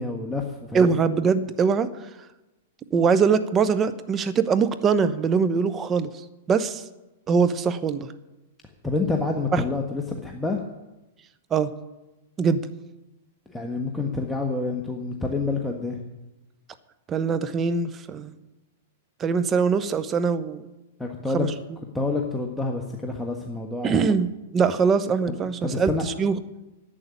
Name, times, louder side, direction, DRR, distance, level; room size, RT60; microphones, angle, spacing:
voice 1, 0.0-0.9 8.8-10.6 13.5-16.0 21.0-21.5 21.9-24.0 25.3-25.4 25.6-26.0, left 3 dB, 5° left, 1 dB, 1.4 m, -28 dB
voice 2, 0.7-1.9 2.9-6.1 6.5-6.8 7.3-8.1 9.5-9.6 11.5-11.7 12.4-12.7 17.1-18.3 19.2-20.7 21.3-21.5 23.8-24.3 24.5-26.3, right 5 dB, 25° right, 14 dB, 1.0 m, -22 dB
11.0 x 8.5 x 9.8 m, 1.0 s
hypercardioid pair, 115°, 0 cm